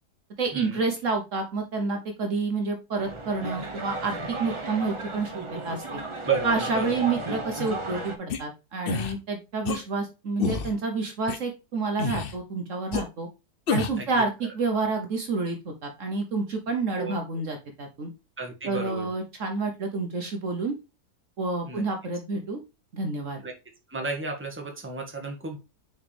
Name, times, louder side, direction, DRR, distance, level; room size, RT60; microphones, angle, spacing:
voice 1, 0.4-5.3 5.6-6.0 6.4-13.3 13.7-18.1 18.7-20.7 21.4-22.6 22.9-23.4, right 3 dB, 55° right, 4 dB, 1.2 m, -29 dB
sound 1, 3.0-8.2, right 2 dB, 25° right, 0.7 m, -34 dB
voice 2, 6.3-6.9 14.0-14.1 16.9-17.1 18.4-19.1 21.7-21.8 23.4-23.5 23.9-25.6, right 4 dB, 10° right, 2 dB, 1.3 m, -32 dB
sound 2, 8.3-8.4 8.9-9.1 9.6-9.8 10.4-10.7 11.3-11.4 12.0-12.4 12.9-13.0 13.7-14.0, left 5 dB, 55° left, 0.7 m, -28 dB
6.3 x 4.5 x 3.4 m, 0.28 s
omnidirectional pair, 1.7 m